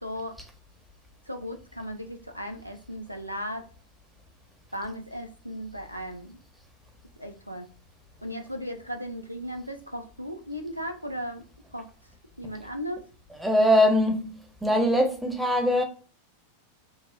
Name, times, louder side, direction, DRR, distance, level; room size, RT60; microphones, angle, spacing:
voice 1, 0.0-0.4 1.3-3.7 4.7-6.4 7.2-7.7 8.2-11.5 11.7-11.9 12.4-13.1, equal, 90° right, 0.5 m, -36 dB
voice 2, 13.3-15.8, equal, 5° right, 0.8 m, -22 dB
5.3 x 2.3 x 2.5 m
figure-of-eight pair, 90°, 0 cm